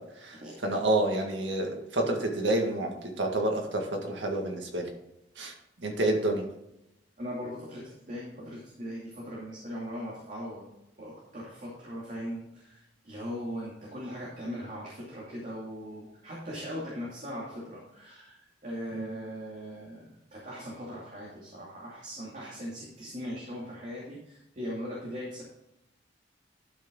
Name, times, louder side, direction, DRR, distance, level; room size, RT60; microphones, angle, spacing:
voice 1, 0.0-4.9 5.4-6.5 18.9-19.1, right 1 dB, 80° right, 2 dB, 2.0 m, -29 dB
voice 2, 7.2-10.6 11.0-25.4, equal, 45° right, -5 dB, 2.5 m, -39 dB
12.0 x 6.1 x 3.9 m, 0.83 s
head